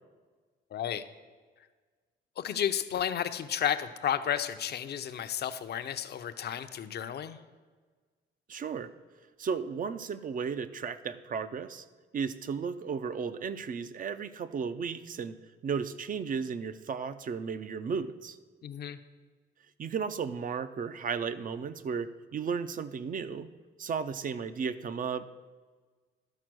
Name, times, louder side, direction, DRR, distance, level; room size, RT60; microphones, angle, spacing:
voice 1, 0.7-1.0 2.4-7.4 18.6-19.0, left 9 dB, 55° left, 11 dB, 0.6 m, -32 dB
voice 2, 8.5-8.9 9.4-11.8 12.1-15.4 15.6-18.4 19.8-23.5 23.8-25.2, right 6 dB, 45° right, 12 dB, 0.5 m, -34 dB
12.0 x 4.4 x 6.1 m, 1.4 s
cardioid pair, 90°, 20 cm